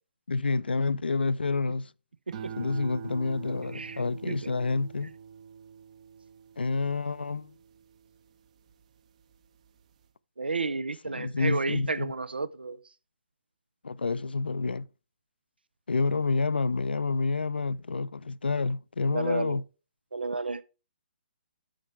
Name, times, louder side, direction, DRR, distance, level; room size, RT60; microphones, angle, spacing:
voice 1, 0.3-1.9 2.6-5.1 6.6-7.5 11.0-12.1 13.8-14.9 15.9-19.6, left 4 dB, 80° left, 0.4 m, -28 dB
sound 1, 2.3-8.8 9.3-9.8, right 7 dB, 45° right, 0.9 m, -45 dB
voice 2, 3.7-4.5 10.4-12.8 19.1-19.6 20.1-20.6, right 3 dB, 80° right, 0.6 m, -32 dB
8.8 x 6.5 x 3.4 m
figure-of-eight pair, 130°, 5 cm